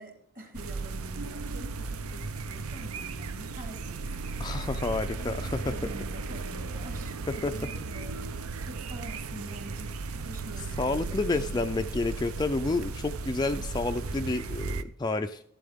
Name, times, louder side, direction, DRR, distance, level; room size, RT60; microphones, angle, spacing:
voice 1, 0.0-4.7 5.0-8.3 8.6-11.9, right 1 dB, 40° right, 1.9 m, -46 dB
sound 1, 0.5-14.8, right 3 dB, 70° right, 0.6 m, -36 dB
voice 2, 4.4-5.7 7.3-7.5 10.8-15.4, left 3 dB, 20° left, 0.3 m, -30 dB
12.0 x 11.0 x 3.6 m
head